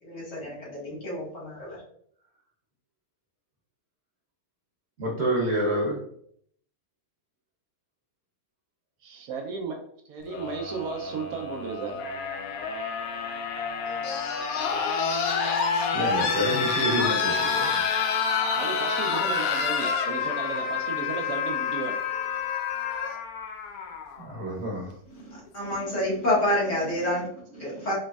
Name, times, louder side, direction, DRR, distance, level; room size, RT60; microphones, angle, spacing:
voice 1, 0.0-1.8 25.2-27.9, left 1 dB, 55° left, -6 dB, 1.5 m, -28 dB
voice 2, 5.0-6.0 15.9-17.8 24.2-24.9, right 1 dB, 50° right, -2 dB, 1.0 m, -28 dB
voice 3, 9.0-9.8 10.1-12.0 14.5-15.1 18.5-22.0, right 5 dB, 75° right, 1 dB, 1.0 m, -34 dB
sound 1, 10.3-24.3 25.5-25.6, left 5 dB, 70° left, 1.0 m, -28 dB
4.1 x 3.0 x 2.3 m, 0.66 s
omnidirectional pair, 1.7 m